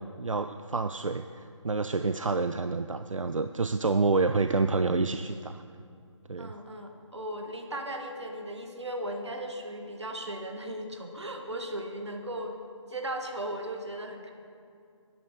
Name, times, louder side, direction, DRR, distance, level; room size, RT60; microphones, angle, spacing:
voice 1, 0.2-5.6 6.3-6.5, right 3 dB, 85° right, 10 dB, 0.4 m, -28 dB
voice 2, 6.4-12.6 12.9-14.3, right 1 dB, 60° right, 4 dB, 1.6 m, -37 dB
12.0 x 9.8 x 4.8 m, 2.4 s
figure-of-eight pair, 150°, 16 cm